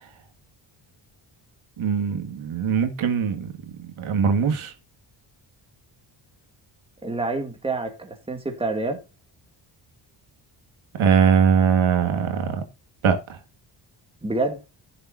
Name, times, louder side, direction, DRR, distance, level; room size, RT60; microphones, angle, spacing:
voice 1, 1.8-3.5 4.0-4.7 11.0-12.6 13.0-13.2, right 7 dB, 80° right, 2.2 m, -21 dB
voice 2, 7.0-9.0 14.2-14.6, right 2 dB, 10° right, 2.4 m, -27 dB
16.0 x 7.1 x 2.7 m
wide cardioid pair, 135°, 48 cm